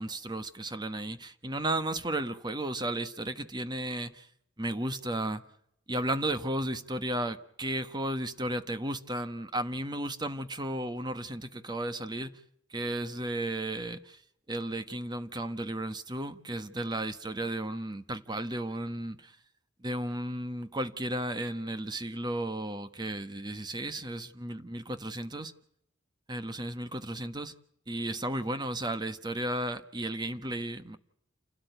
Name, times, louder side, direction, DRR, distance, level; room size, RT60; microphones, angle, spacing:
voice 1, 0.0-4.3 4.6-5.4 5.9-12.3 12.7-14.2 14.5-19.3 19.8-25.5 26.3-27.5 27.9-31.0, right 1 dB, 20° right, 1.3 m, -34 dB
29.0 x 13.0 x 9.1 m
head